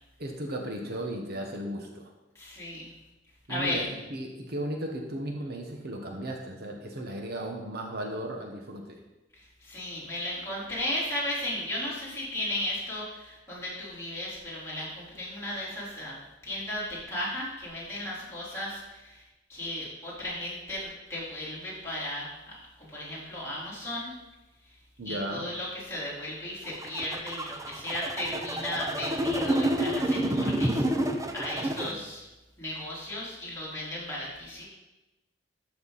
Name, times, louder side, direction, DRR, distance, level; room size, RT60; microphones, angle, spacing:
voice 1, 0.2-2.1 3.5-9.0 25.0-25.5 31.5-32.0, right 1 dB, 55° right, 2 dB, 1.2 m, -36 dB
voice 2, 2.3-2.9 3.5-3.8 9.4-16.1 16.4-19.2 19.5-22.3 22.8-24.1 25.0-30.9 31.3-32.2 32.6-34.6, left 1 dB, 15° left, -8 dB, 3.9 m, -35 dB
sound 1, 26.7-31.9, right 1 dB, 15° right, 0.7 m, -29 dB
13.0 x 6.9 x 4.2 m, 1.0 s
head